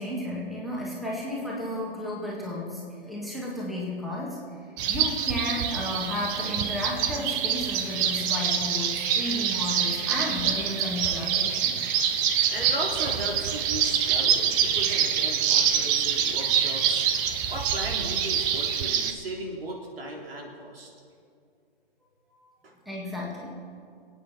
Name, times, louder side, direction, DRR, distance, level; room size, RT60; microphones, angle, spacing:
voice 1, 0.0-4.4 4.9-11.8 22.9-23.5, left 1 dB, ahead, -4 dB, 2.1 m, -33 dB
sound 1, 4.8-19.1, right 8 dB, 20° right, 0.7 m, -26 dB
voice 2, 12.5-17.1 17.5-20.9 22.6-22.7, right 1 dB, 75° right, -1 dB, 3.7 m, -36 dB
27.0 x 9.1 x 4.5 m, 2.4 s
hypercardioid pair, 140°, 30 cm